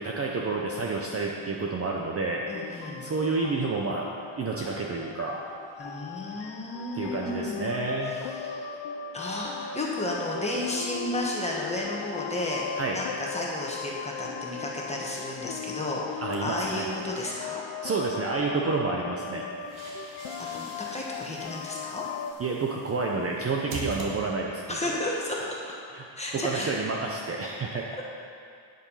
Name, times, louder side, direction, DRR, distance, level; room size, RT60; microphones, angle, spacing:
voice 1, 0.0-4.0 4.4-5.4 6.9-8.1 12.8-13.0 16.2-16.9 17.8-19.5 22.4-25.0 25.4-25.5 25.9-27.8, right 3 dB, 30° right, -1 dB, 0.7 m, -30 dB
sound 1, 2.4-22.3, left 7 dB, 65° left, 0.6 m, -38 dB
voice 2, 2.5-3.1 5.8-7.8 8.3-8.7 9.1-17.6 20.4-22.0 24.7-25.8 26.2-26.7 27.9-28.0, left 1 dB, 15° left, -3 dB, 1.4 m, -33 dB
sound 2, 16.3-17.4 19.3-24.7, right 3 dB, 70° right, 1.9 m, -44 dB
9.2 x 7.6 x 5.6 m, 2.3 s
cardioid pair, 160°, 49 cm